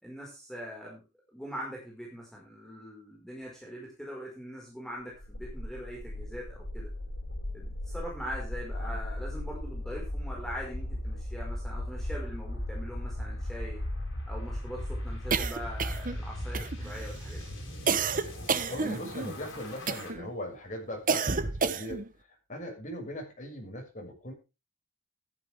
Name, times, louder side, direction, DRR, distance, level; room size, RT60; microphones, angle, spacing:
voice 1, 0.0-1.0 1.3-6.9 7.5-13.8 14.3-17.5, equal, ahead, -3 dB, 5.2 m, -42 dB
sound 1, 5.1-20.1, left 1 dB, 65° left, 6.4 m, -37 dB
sound 2, 15.3-16.2 16.5-17.1 17.9-19.3 19.9-20.3 21.1-22.1, right 5 dB, 40° right, 1.0 m, -30 dB
voice 2, 18.7-22.0 22.5-24.3, left 1 dB, 40° left, 1 dB, 6.5 m, -39 dB
14.0 x 11.5 x 3.6 m, 0.29 s
head